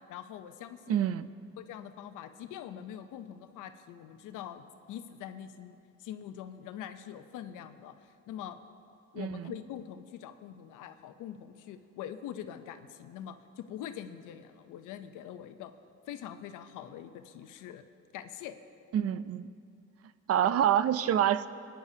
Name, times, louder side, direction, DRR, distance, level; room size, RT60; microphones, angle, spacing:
voice 1, 0.1-1.1 1.6-8.6 9.1-15.7 16.1-17.8 18.1-18.6, left 10 dB, 90° left, 9 dB, 0.6 m, -44 dB
voice 2, 0.9-1.3 9.2-9.5 18.9-19.5 20.3-21.5, right 10 dB, 55° right, 15 dB, 0.5 m, -27 dB
19.5 x 10.0 x 2.8 m, 2.5 s
cardioid pair, 90°, 30 cm